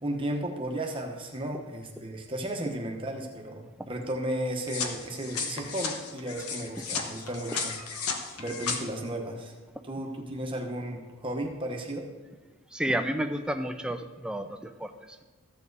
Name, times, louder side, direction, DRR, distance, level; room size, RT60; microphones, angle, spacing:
voice 1, 0.0-7.8 8.4-9.5 9.8-12.1, right 1 dB, 25° right, 2 dB, 1.1 m, -34 dB
sound 1, 4.7-8.8, left 5 dB, 80° left, 1.1 m, -34 dB
voice 2, 12.7-15.2, right 1 dB, 5° right, 7 dB, 0.5 m, -32 dB
13.5 x 7.4 x 4.0 m, 1.2 s
head